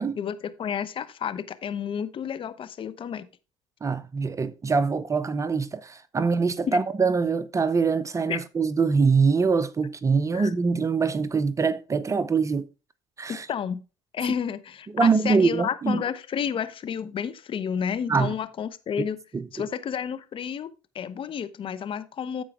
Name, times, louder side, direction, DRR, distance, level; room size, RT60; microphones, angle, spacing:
voice 1, 0.2-3.3 6.7-6.8 8.3-8.4 10.3-10.5 13.3-13.8 14.1-19.2 19.5-20.7 20.9-22.4, left 7 dB, 45° left, 0.9 m, -31 dB
voice 2, 3.8-12.7 13.2-13.5 14.9-16.0 18.1-18.3 19.3-19.5, right 4 dB, 25° right, 0.7 m, -24 dB
13.5 x 4.6 x 3.6 m
hypercardioid pair, 75°, 13 cm